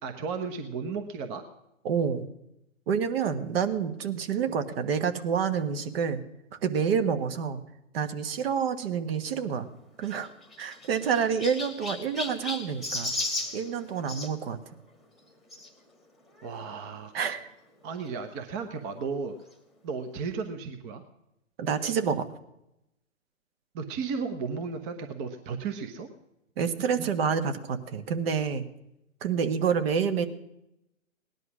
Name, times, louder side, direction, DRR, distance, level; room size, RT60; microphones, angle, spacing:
voice 1, 0.0-1.4 16.4-17.1 17.8-19.4 19.8-21.0 23.7-26.1, right 5 dB, 25° right, 7 dB, 1.0 m, -34 dB
voice 2, 1.8-2.3 2.9-6.2 6.6-7.6 7.9-9.7 10.0-10.3 10.6-13.1 13.5-14.6 17.1-17.5 21.6-22.2 26.6-28.6 29.2-30.3, right 6 dB, 45° right, 9 dB, 1.4 m, -28 dB
Chirp tweet, 10.0-14.3 15.5-15.7 16.4-16.5 16.7-16.8 18.1-18.2, left 2 dB, ahead, 1.4 m, -35 dB
18.0 x 11.0 x 6.2 m, 0.87 s
hypercardioid pair, 135°, 40 cm